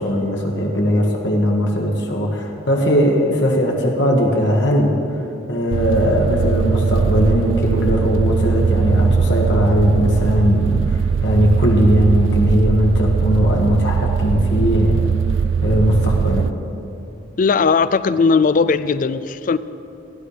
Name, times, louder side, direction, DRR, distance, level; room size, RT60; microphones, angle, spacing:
voice 1, 0.0-5.0 5.5-15.1 15.6-16.5, equal, 65° left, 1.7 m, -18 dB
sound 1, 5.7-16.5, right 6 dB, 80° right, 0.3 m, -20 dB
voice 2, 17.4-19.6, left 4 dB, 45° left, 0.4 m, -17 dB
16.0 x 11.5 x 5.0 m
head